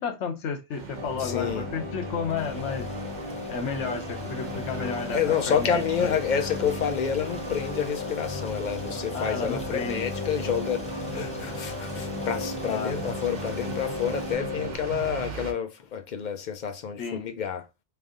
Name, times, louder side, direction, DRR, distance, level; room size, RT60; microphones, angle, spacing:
voice 1, 0.0-2.9 3.5-5.2 5.5-6.2 9.1-10.1 12.7-12.9 17.0-17.3, left 6 dB, 80° left, 1.1 m, -32 dB
sound 1, 0.7-15.5, right 5 dB, 85° right, 1.2 m, -41 dB
sound 2, 1.0-14.8, left 3 dB, 30° right, 1.0 m, -35 dB
voice 2, 1.2-1.6 5.1-17.6, left 7 dB, 50° left, 0.6 m, -29 dB
Stream, 2.4-14.3, equal, 5° left, 0.7 m, -46 dB
3.3 x 2.6 x 3.6 m
omnidirectional pair, 1.2 m